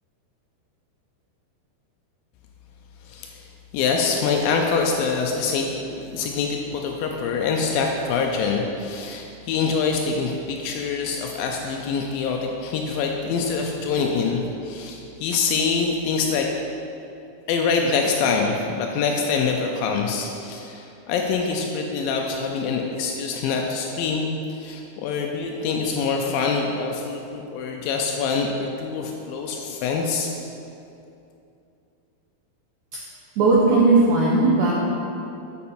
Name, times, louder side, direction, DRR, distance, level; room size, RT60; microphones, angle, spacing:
voice 1, 3.0-3.4 3.7-16.5 17.5-30.3, left 5 dB, 90° left, 2 dB, 2.0 m, -25 dB
voice 2, 33.4-34.7, right 3 dB, 90° right, -5 dB, 1.7 m, -17 dB
7.5 x 6.9 x 4.3 m, 2.7 s
omnidirectional pair, 4.7 m